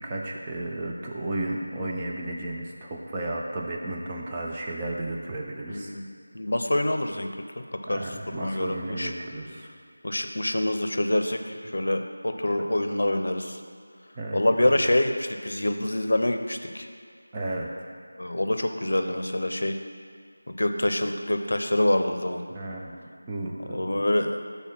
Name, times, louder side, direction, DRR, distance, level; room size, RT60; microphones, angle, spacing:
voice 1, 0.0-5.9 7.9-9.7 14.2-14.8 17.3-17.9 22.5-24.0, right 1 dB, 10° right, -2 dB, 0.3 m, -33 dB
voice 2, 5.7-6.1 6.3-7.3 7.9-9.1 10.0-13.6 14.3-16.9 18.2-19.8 20.5-22.4 23.7-24.6, left 1 dB, 70° left, 6 dB, 0.5 m, -26 dB
6.4 x 3.4 x 5.8 m, 2.3 s
figure-of-eight pair, 180°, 0 cm